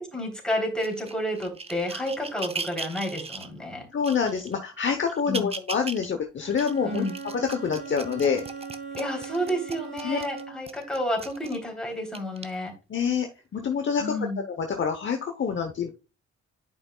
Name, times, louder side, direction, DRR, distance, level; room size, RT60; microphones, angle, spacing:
voice 1, 0.1-3.9 5.3-5.5 6.8-7.2 9.0-12.7 14.0-14.4, equal, 5° left, -1 dB, 3.3 m, -30 dB
sound 1, 0.8-3.5 4.0-4.5 5.1-6.1 6.5-11.6 12.1-12.4 13.2-13.3, right 4 dB, 20° right, 0.6 m, -38 dB
voice 2, 3.9-7.0 7.3-8.4 10.0-10.2 12.9-13.3 13.5-14.1 14.5-15.9, left 6 dB, 40° left, 4 dB, 0.9 m, -26 dB
Bowed string instrument, 6.4-10.8, right 5 dB, 40° right, 3.5 m, -40 dB
10.5 x 5.3 x 2.3 m, 0.30 s
cardioid pair, 90°, 30 cm